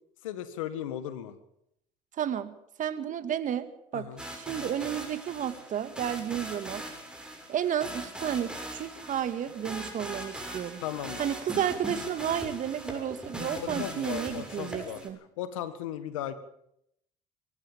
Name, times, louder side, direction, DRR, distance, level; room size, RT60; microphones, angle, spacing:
voice 1, 0.2-1.4 3.9-4.2 10.8-11.2 13.5-15.1 15.4-16.3, left 11 dB, 85° left, 12 dB, 1.8 m, -36 dB
voice 2, 2.2-2.5 2.8-3.7 3.9-6.9 7.5-10.8 11.2-15.2, right 9 dB, 50° right, 11 dB, 2.1 m, -32 dB
sound 1, 4.2-15.1, right 1 dB, 5° right, 6.8 m, -40 dB
23.5 x 15.5 x 7.5 m, 0.77 s
hypercardioid pair, 65°, 16 cm